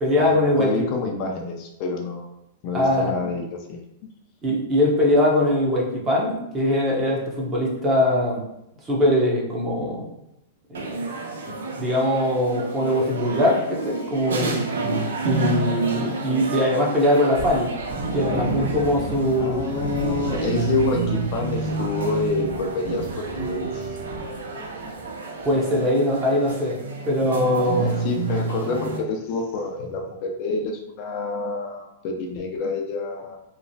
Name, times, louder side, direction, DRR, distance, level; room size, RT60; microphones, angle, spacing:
voice 1, 0.0-0.7 2.7-3.1 4.4-8.4 8.9-10.1 10.7-11.1 11.5-14.5 15.2-17.7 18.1-19.6 25.4-26.8 27.1-27.9, left 1 dB, 25° right, -3 dB, 0.7 m, -21 dB
voice 2, 0.6-2.3 2.6-3.8 4.5-4.6 19.4-23.9 27.5-33.4, left 3 dB, 45° left, 2 dB, 0.4 m, -28 dB
sound 1, 10.7-29.0, right 4 dB, 90° right, 0.5 m, -30 dB
sound 2, 17.3-25.1 25.4-25.6 26.0-26.1, right 2 dB, 65° right, 1.1 m, -34 dB
3.0 x 2.1 x 2.6 m, 0.85 s
hypercardioid pair, 135°, 0 cm